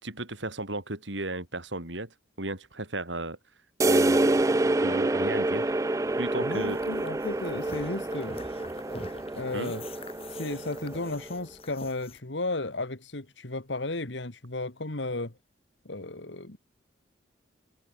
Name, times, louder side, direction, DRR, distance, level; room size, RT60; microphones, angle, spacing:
voice 1, 0.0-3.4 3.8-5.7 6.2-6.8 9.5-9.7, right 2 dB, 85° right, 7.0 m, -35 dB
sound 1, 3.8-11.3, right 2 dB, 15° right, 0.4 m, -27 dB
voice 2, 6.4-8.4 9.3-9.8 10.4-15.3 15.9-16.6, left 2 dB, 80° left, 2.1 m, -34 dB
sound 2, 6.5-12.2, left 2 dB, 30° left, 4.0 m, -46 dB
head